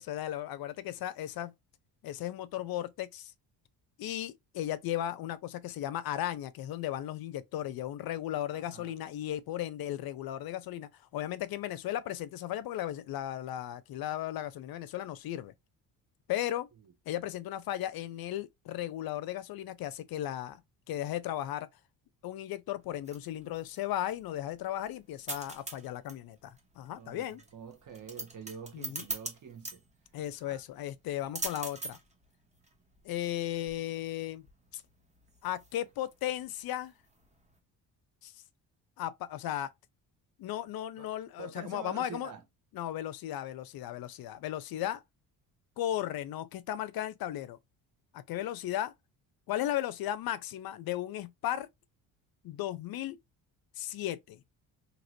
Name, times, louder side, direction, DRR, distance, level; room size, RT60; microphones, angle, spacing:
voice 1, 0.0-1.5 2.0-3.3 4.0-15.5 16.3-16.7 17.1-20.6 20.9-21.7 22.2-27.4 28.7-29.1 30.1-32.0 33.0-34.5 34.7-34.8 35.4-36.9 38.2-38.3 39.0-39.7 40.4-42.3 42.7-45.0 45.8-47.6 48.1-48.9 49.5-51.7 52.4-53.2 53.8-54.4, left 12 dB, 60° left, 0.5 m, -36 dB
voice 2, 8.5-8.9 27.0-27.3 27.5-29.8 30.4-30.6 41.0-41.1 41.4-42.4, right 6 dB, 45° right, 1.2 m, -46 dB
sound 1, 22.8-37.6, right 2 dB, 15° right, 0.9 m, -44 dB
2.9 x 2.9 x 2.5 m
supercardioid pair, 75°, 43 cm